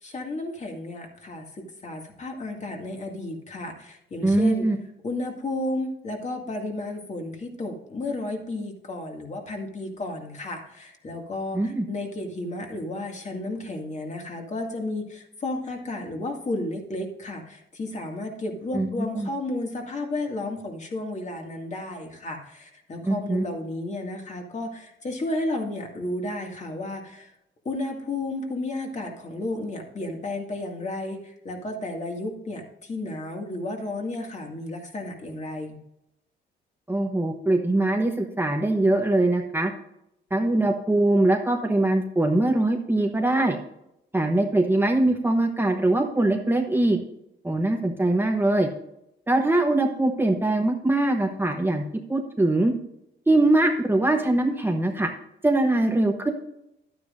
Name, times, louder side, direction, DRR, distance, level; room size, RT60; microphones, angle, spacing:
voice 1, 0.0-4.7 5.0-27.3 27.6-35.8, left 2 dB, 35° left, 2 dB, 2.1 m, -32 dB
voice 2, 4.2-4.8 11.5-11.9 18.7-19.3 23.1-23.4 36.9-39.7 40.3-43.6 44.1-47.0 47.4-48.7 49.3-51.8 52.1-52.7 53.3-55.1 55.4-56.3, right 2 dB, 10° right, 3 dB, 0.9 m, -22 dB
11.0 x 9.3 x 2.5 m, 0.83 s
cardioid pair, 90°, 20 cm